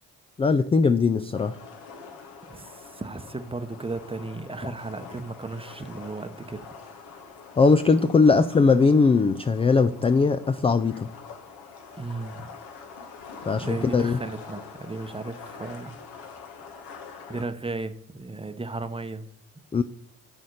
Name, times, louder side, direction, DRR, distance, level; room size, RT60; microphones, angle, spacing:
voice 1, 0.4-1.6 7.6-11.1 13.5-14.2 19.7-19.8, left 4 dB, 15° left, 11 dB, 0.3 m, -20 dB
sound 1, 1.3-17.4, left 5 dB, 75° left, 1.5 m, -44 dB
voice 2, 2.5-6.7 12.0-12.5 13.6-16.0 17.3-19.3, right 3 dB, 15° right, 10 dB, 0.8 m, -35 dB
7.9 x 4.2 x 6.5 m, 0.73 s
supercardioid pair, 60°, 38 cm